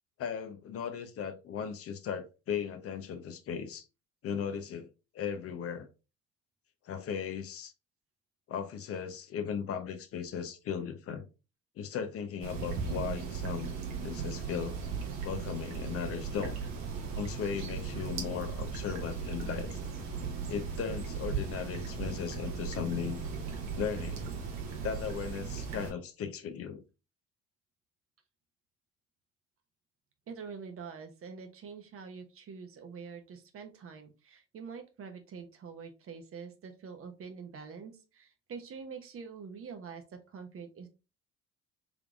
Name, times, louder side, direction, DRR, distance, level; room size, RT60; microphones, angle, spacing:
voice 1, 0.2-3.9 4.2-4.9 5.1-5.9 6.9-7.7 8.5-11.2 11.8-13.7 14.0-14.8 15.2-16.6 17.2-19.8 20.5-23.2 23.8-24.2 24.8-26.8, left 7 dB, 50° left, 0.7 m, -37 dB
sound 1, 12.4-25.9, right 5 dB, 65° right, 1.2 m, -37 dB
Bass guitar, 16.3-22.5, right 10 dB, 80° right, 0.8 m, -56 dB
voice 2, 30.3-40.9, right 5 dB, 45° right, 1.0 m, -45 dB
3.6 x 3.4 x 2.4 m
hypercardioid pair, 60°, 30 cm